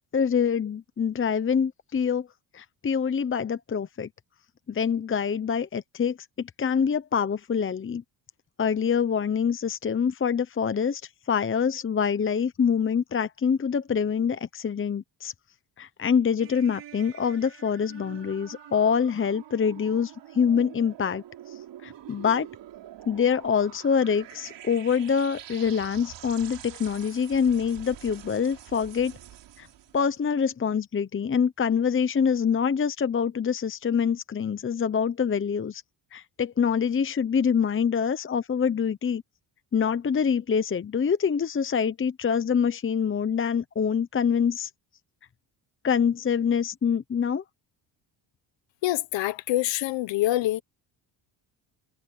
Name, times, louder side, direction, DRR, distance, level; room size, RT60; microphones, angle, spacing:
voice 1, 0.1-2.3 2.5-4.1 4.7-8.0 8.6-11.0 11.3-15.3 15.8-22.5 23.1-29.2 29.6-29.7 29.9-35.8 36.1-39.2 39.7-44.7 45.8-47.4, left 7 dB, 30° left, 0.9 m, -25 dB
sound 1, 16.4-30.1, right 11 dB, 70° right, 3.7 m, -46 dB
voice 2, 48.8-50.6, left 15 dB, 80° left, 1.2 m, -25 dB
cardioid pair, 95°, 44 cm